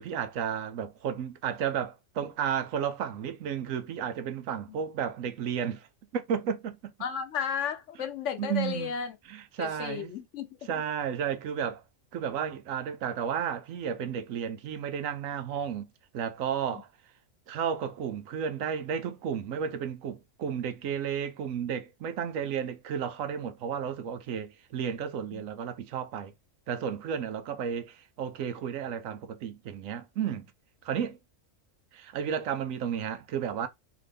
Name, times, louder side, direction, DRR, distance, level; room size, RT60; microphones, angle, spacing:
voice 1, 0.0-5.9 6.1-6.9 8.4-8.9 9.3-10.1 10.6-11.8 12.1-15.9 16.1-16.9 17.5-26.3 26.7-30.5 30.8-31.2 31.9-33.7, right 8 dB, 85° right, 1.0 m, -33 dB
voice 2, 7.0-9.1 9.6-10.5 25.3-25.4, left 7 dB, 65° left, 1.0 m, -33 dB
4.0 x 2.9 x 3.4 m
omnidirectional pair, 1.4 m